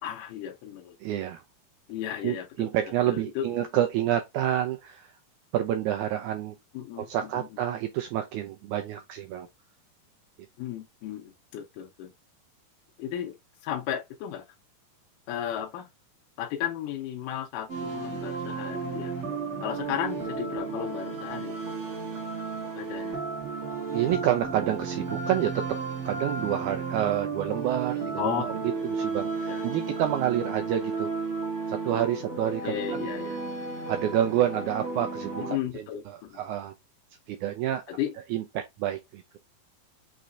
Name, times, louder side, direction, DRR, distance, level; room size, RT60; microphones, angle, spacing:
voice 1, 0.0-1.0 1.9-2.7 3.1-3.5 6.7-7.5 10.6-12.1 13.0-13.3 13.6-14.5 15.3-15.9 16.4-19.1 19.6-21.6 22.8-23.2 28.2-28.4 29.5-29.7 32.6-33.5 35.4-36.4 37.9-38.1, left 10 dB, 80° left, 2.2 m, -34 dB
voice 2, 1.0-1.4 2.2-5.1 5.5-6.5 7.0-9.5 23.9-25.6 26.0-28.5 28.8-31.1 31.7-33.1 33.9-35.8 36.3-36.7 37.3-37.8 38.3-39.2, right 11 dB, 85° right, 1.7 m, -28 dB
sound 1, 17.7-35.6, right 4 dB, 30° right, 1.3 m, -33 dB
5.7 x 3.1 x 2.5 m
omnidirectional pair, 4.1 m